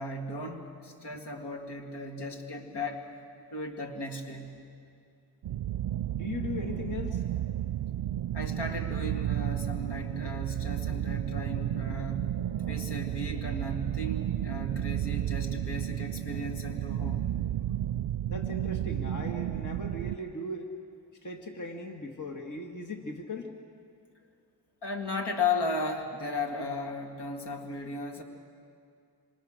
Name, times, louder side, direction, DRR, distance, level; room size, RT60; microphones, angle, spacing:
voice 1, 0.0-3.1 3.5-4.6 8.3-17.2 24.8-28.2, left 2 dB, 75° left, 3 dB, 2.5 m, -35 dB
sound 1, 5.4-20.2, right 12 dB, 70° right, 0.5 m, -32 dB
voice 2, 6.1-7.2 18.3-20.7 21.2-23.5, left 2 dB, 45° left, 3 dB, 1.9 m, -38 dB
27.0 x 25.5 x 6.5 m, 2.3 s
wide cardioid pair, 80°, 41 cm